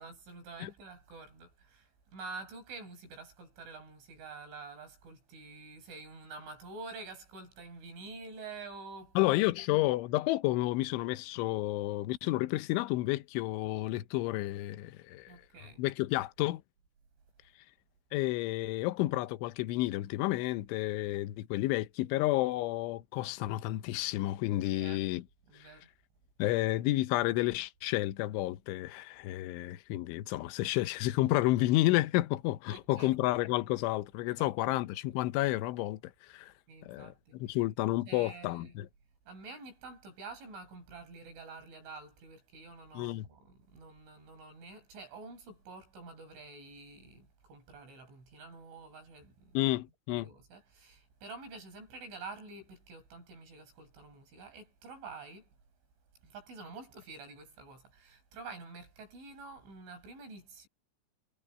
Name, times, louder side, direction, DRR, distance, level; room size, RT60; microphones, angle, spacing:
voice 1, 0.0-9.3 15.3-15.9 24.7-25.0 25.5-25.9 32.7-33.1 34.4-34.8 36.7-37.6 38.0-38.7 39.3-49.6 50.1-55.5 56.2-60.7, right 3 dB, 75° right, 10.0 m, -48 dB
voice 2, 9.2-15.3 15.8-16.6 18.1-25.2 26.4-36.0 36.3-36.5 36.8-38.9 42.9-43.3 49.5-50.3, left 17 dB, 80° left, 3.3 m, -31 dB
omnidirectional pair, 5.6 m